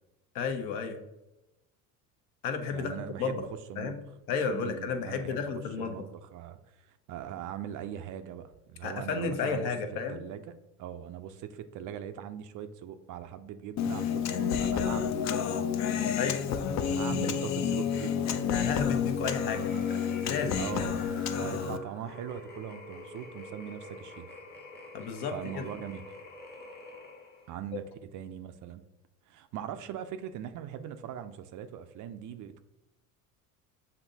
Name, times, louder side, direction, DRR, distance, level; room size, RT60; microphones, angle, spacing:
voice 1, 0.3-1.0 2.4-2.9 3.2-3.4 3.8-4.0 4.3-5.9 8.8-10.2 16.2-16.8 17.2-17.3 18.5-20.6 24.9-25.6, left 5 dB, 60° left, 6 dB, 0.9 m, -32 dB
voice 2, 2.7-4.0 4.5-9.7 10.1-10.5 10.8-15.7 16.0-16.2 16.9-18.5 20.6-24.3 25.3-26.0 27.5-28.8 29.3-32.6, right 9 dB, 45° right, 10 dB, 0.5 m, -41 dB
Human voice, 13.8-21.8, left 7 dB, 40° left, 0.5 m, -30 dB
sound 1, 19.2-27.5, left 2 dB, 20° left, 0.9 m, -47 dB
7.1 x 2.7 x 2.7 m, 0.95 s
hypercardioid pair, 75°, 44 cm